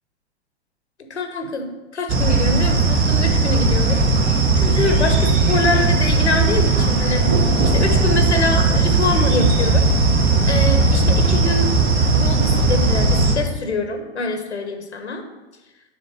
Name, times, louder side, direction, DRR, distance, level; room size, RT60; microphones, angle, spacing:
voice 1, 1.1-4.0 4.5-9.9 10.5-11.8 12.1-15.2, left 3 dB, 90° left, 5 dB, 1.3 m, -25 dB
sound 1, 2.1-13.4, right 3 dB, 30° right, 1.3 m, -17 dB
9.3 x 3.7 x 5.8 m, 1.1 s
figure-of-eight pair, 100°, 33 cm